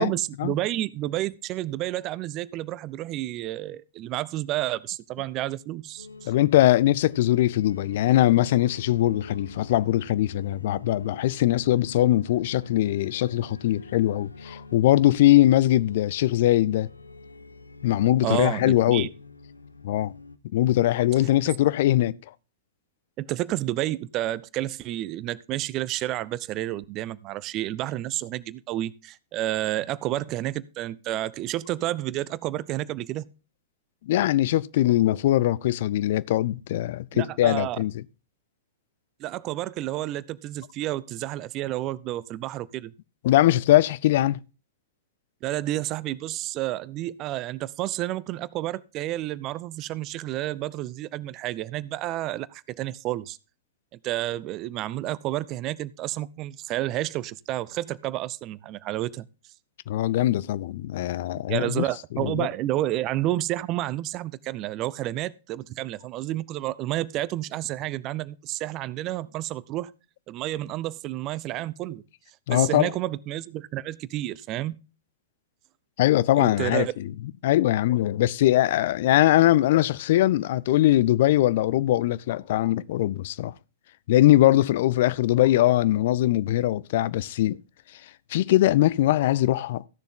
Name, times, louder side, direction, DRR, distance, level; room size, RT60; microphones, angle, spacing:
voice 1, 0.0-6.3 18.2-19.1 23.2-33.2 37.1-37.8 39.2-42.9 45.4-53.4 54.0-59.3 61.5-69.9 70.3-72.0 72.5-74.8 76.3-76.9, right 15 dB, 30° right, 0.4 m, -30 dB
sound 1, 6.0-20.4, left 3 dB, 80° left, 0.7 m, -45 dB
voice 2, 6.3-16.9 17.8-19.1 19.8-20.1 20.5-22.2 34.0-38.0 43.2-44.4 59.9-61.8 62.1-62.5 72.5-72.9 76.0-77.1 77.4-83.5 84.1-87.6 88.3-89.8, left 14 dB, 50° left, 0.4 m, -21 dB
14.5 x 6.9 x 3.7 m
figure-of-eight pair, 105°, 0 cm